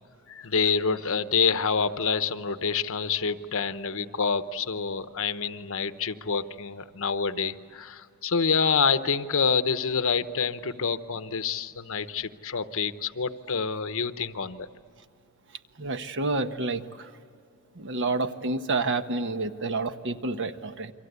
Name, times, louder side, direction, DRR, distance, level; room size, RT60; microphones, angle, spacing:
voice 1, 0.3-14.7, left 5 dB, 65° left, 11 dB, 1.0 m, -27 dB
voice 2, 15.8-16.8 17.8-20.9, right 3 dB, 55° right, 8 dB, 1.2 m, -29 dB
29.5 x 24.0 x 8.2 m, 2.4 s
head